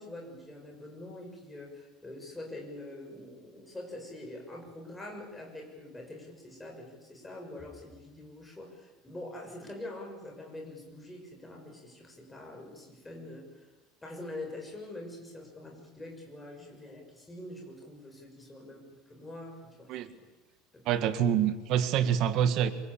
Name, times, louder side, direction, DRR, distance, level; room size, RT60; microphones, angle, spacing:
voice 1, 0.0-13.7 14.0-20.2 20.7-20.8, left 1 dB, 10° left, 1 dB, 6.5 m, -45 dB
voice 2, 20.9-22.7, right 9 dB, 45° right, 10 dB, 1.8 m, -26 dB
27.0 x 24.0 x 8.8 m, 1.2 s
cardioid pair, 165°, 0 cm